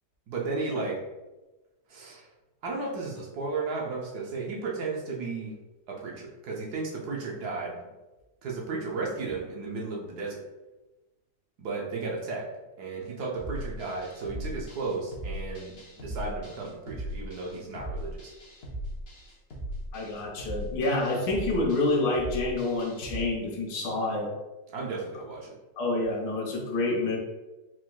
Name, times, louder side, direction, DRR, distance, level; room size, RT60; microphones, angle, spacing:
voice 1, 0.3-1.0 1.9-2.3 2.6-5.5 5.9-7.8 8.4-10.5 11.6-12.5 12.8-18.3 24.7-25.5, right 3 dB, 65° right, -2 dB, 1.3 m, -34 dB
sound 1, 13.4-23.2, right 1 dB, 45° left, 0.9 m, -38 dB
voice 2, 19.9-24.3 25.8-27.2, left 2 dB, 85° left, 0 dB, 1.5 m, -28 dB
4.6 x 4.0 x 2.2 m, 1.1 s
omnidirectional pair, 1.9 m